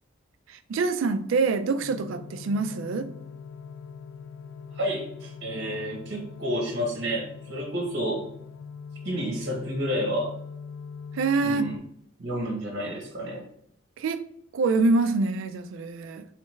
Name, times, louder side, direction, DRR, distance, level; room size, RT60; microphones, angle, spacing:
voice 1, 0.5-3.1 11.1-11.7 14.0-14.2 14.5-16.3, right 3 dB, 70° right, 0.3 m, -25 dB
sound 1, 1.8-11.8, left 5 dB, 70° left, 0.4 m, -42 dB
voice 2, 4.7-8.3 9.0-10.3 11.4-11.7 12.2-13.4, equal, 55° right, 0.9 m, -30 dB
3.4 x 3.2 x 3.1 m
head